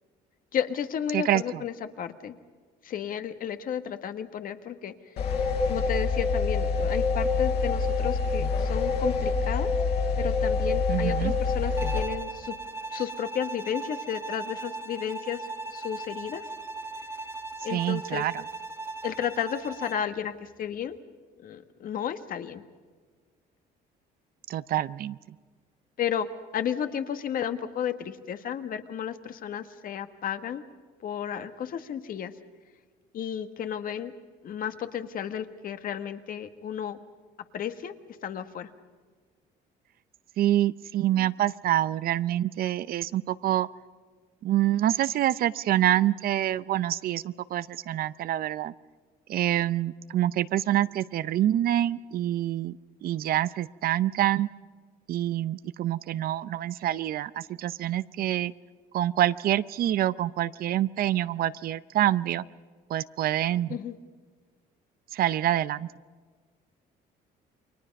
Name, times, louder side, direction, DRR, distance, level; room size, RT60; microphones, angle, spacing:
voice 1, 0.5-2.3 2.8-4.9 5.7-9.7 10.2-12.5 12.9-16.5 17.6-18.3 19.0-21.0 21.4-22.6 26.0-26.3 26.5-30.6 31.0-32.3 33.1-34.1 34.4-37.0 37.5-37.9 38.2-38.7 63.7-64.0, left 9 dB, 55° left, 9 dB, 1.6 m, -33 dB
voice 2, 1.1-1.6 10.9-11.3 17.7-18.4 24.5-25.2 40.4-43.7 44.4-48.7 49.3-52.8 53.0-54.5 55.1-58.5 58.9-62.4 62.9-63.8 65.1-65.9, right 13 dB, 60° right, 16 dB, 0.7 m, -26 dB
sound 1, 5.2-12.0, left 4 dB, 70° left, 4.6 m, -26 dB
Bowed string instrument, 11.8-20.1, right 3 dB, 15° right, 1.3 m, -38 dB
29.0 x 23.0 x 5.4 m, 1.5 s
cardioid pair, 110°, 17 cm